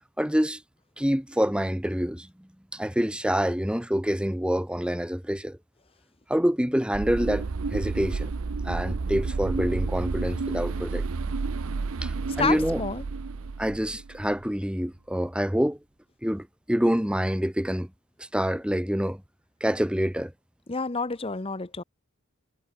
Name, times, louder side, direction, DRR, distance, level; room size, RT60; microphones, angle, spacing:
voice 1, 0.2-0.6 1.0-5.6 6.3-7.5 7.7-8.3 8.6-11.0 12.0-12.8 13.6-15.8 16.2-17.9 18.2-19.2 19.6-20.3, equal, 5° right, 1.0 m, -26 dB
sound 1, 6.9-14.3, right 4 dB, 65° right, 0.6 m, -31 dB
voice 2, 12.4-13.0 20.7-21.8, left 4 dB, 25° left, 0.8 m, -29 dB
head